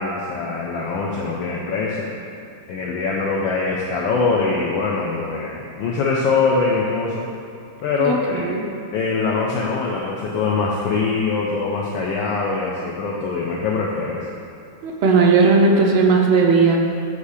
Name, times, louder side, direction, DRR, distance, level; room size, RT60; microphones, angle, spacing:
voice 1, 0.0-2.1 2.7-7.3 7.8-8.4 8.9-14.2, left 4 dB, 75° left, -3 dB, 1.2 m, -23 dB
voice 2, 8.0-8.7 14.8-16.8, right 4 dB, 75° right, 0 dB, 1.5 m, -16 dB
8.3 x 2.8 x 4.7 m, 2.7 s
omnidirectional pair, 2.4 m